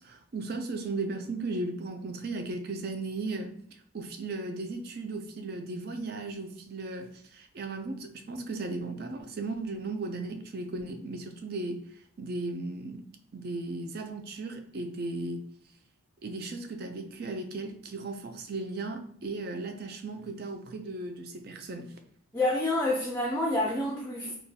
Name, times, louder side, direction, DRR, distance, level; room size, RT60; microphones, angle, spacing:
voice 1, 0.0-3.5 3.9-11.8 12.2-13.0 13.3-15.4 16.2-21.9, right 2 dB, 50° right, 6 dB, 0.4 m, -36 dB
voice 2, 22.3-24.3, left 1 dB, 10° left, -3 dB, 0.4 m, -28 dB
3.8 x 2.3 x 2.7 m, 0.62 s
head